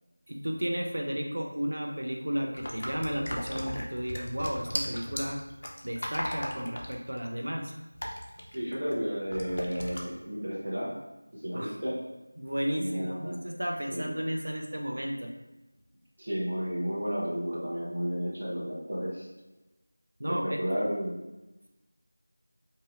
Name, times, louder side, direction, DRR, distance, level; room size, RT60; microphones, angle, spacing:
voice 1, 0.3-5.4 5.8-7.7 11.5-11.8 12.4-15.3 20.2-20.6, equal, 70° right, 2 dB, 0.4 m, -33 dB
sound 1, 2.6-9.0 9.3-10.0, equal, 50° left, 0.5 m, -37 dB
voice 2, 8.5-10.9 11.3-12.0 12.8-13.4 13.9-14.1 16.2-19.3 20.3-21.1, equal, 40° right, -9 dB, 1.0 m, -32 dB
3.8 x 2.7 x 2.5 m, 1.0 s
figure-of-eight pair, 175°, 0 cm